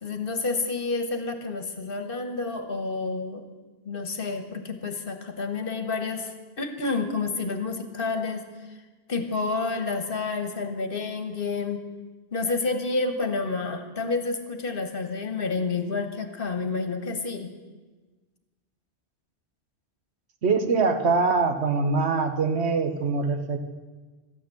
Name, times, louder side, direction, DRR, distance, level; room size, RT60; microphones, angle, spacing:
voice 1, 0.0-3.5 3.8-8.4 9.1-11.8 12.3-17.5, left 3 dB, 60° left, 7 dB, 1.4 m, -29 dB
voice 2, 20.4-23.6, right 4 dB, 85° right, 7 dB, 1.4 m, -23 dB
13.5 x 8.8 x 7.6 m, 1.3 s
omnidirectional pair, 1.1 m